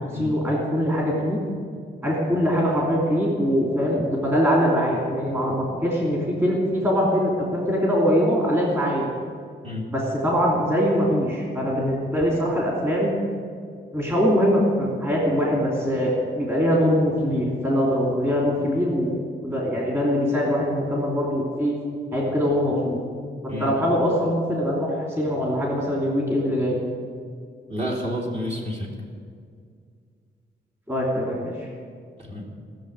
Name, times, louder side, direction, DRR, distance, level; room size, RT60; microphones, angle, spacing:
voice 1, 0.1-1.4 2.0-9.0 9.9-13.1 13.9-21.7 22.1-23.0 23.4-26.8 30.9-31.5, equal, 15° right, -4 dB, 3.0 m, -22 dB
voice 2, 27.7-28.9 32.2-32.5, equal, 35° right, -3 dB, 3.4 m, -30 dB
18.5 x 7.3 x 9.5 m, 2.1 s
wide cardioid pair, 170°, 18 cm